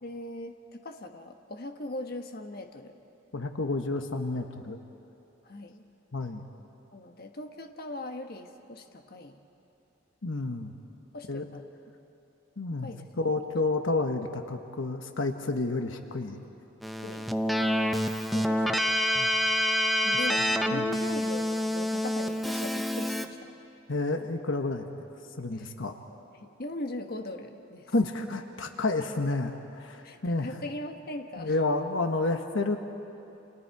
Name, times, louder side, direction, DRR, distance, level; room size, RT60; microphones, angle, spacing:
voice 1, 0.0-2.9 5.4-5.9 6.9-9.4 11.1-11.6 12.8-13.1 13.6-13.7 17.0-17.3 18.3-19.0 20.0-23.6 25.5-25.7 26.3-27.9 30.0-31.6, left 1 dB, 55° left, 5 dB, 1.3 m, -40 dB
voice 2, 3.3-4.8 6.1-6.4 10.2-10.7 11.3-11.4 12.6-16.5 19.1-19.3 20.7-20.9 23.9-24.9 25.4-26.0 27.9-30.5 31.4-32.8, left 2 dB, 80° left, 5 dB, 1.2 m, -30 dB
Keyboard (musical), 16.8-23.3, equal, ahead, 0.8 m, -27 dB
30.0 x 28.0 x 4.8 m, 2.9 s
head